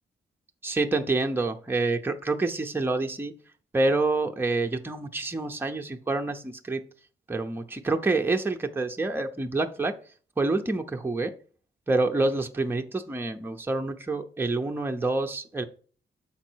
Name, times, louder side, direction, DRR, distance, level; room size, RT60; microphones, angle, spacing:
voice 1, 0.6-3.3 3.7-6.8 7.3-9.9 10.4-11.3 11.9-15.6, right 2 dB, 10° right, 4 dB, 0.7 m, -27 dB
7.3 x 5.2 x 4.5 m, 0.41 s
wide cardioid pair, 145°, 19 cm